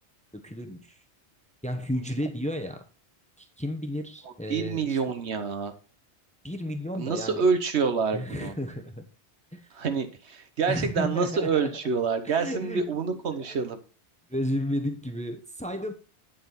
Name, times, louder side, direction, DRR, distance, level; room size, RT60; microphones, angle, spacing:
voice 1, 0.3-1.0 1.6-2.8 3.4-5.0 6.4-7.4 8.1-9.1 9.5-9.7 10.7-11.7 12.2-13.7 14.3-15.9, equal, 5° left, 7 dB, 0.9 m, -33 dB
voice 2, 4.5-5.7 7.0-8.5 9.7-13.8, right 5 dB, 75° right, 8 dB, 1.3 m, -27 dB
9.0 x 7.5 x 4.1 m, 0.36 s
omnidirectional pair, 1.2 m